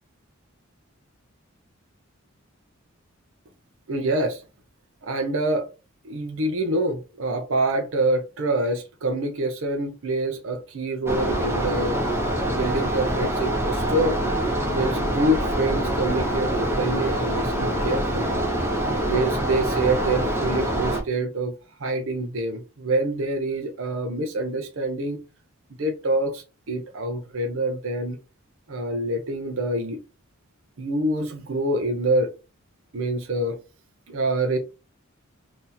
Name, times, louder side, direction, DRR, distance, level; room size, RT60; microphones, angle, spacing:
voice 1, 3.9-4.4 5.0-5.7 6.0-12.1 12.5-14.2 14.7-18.4 19.1-21.5 21.8-25.2 25.8-28.2 28.7-30.0 30.8-32.3 32.9-33.6 34.1-34.6, right 1 dB, 65° right, 0.6 m, -26 dB
sound 1, 11.1-21.0, right 1 dB, 10° right, 0.8 m, -25 dB
2.8 x 2.7 x 3.8 m
head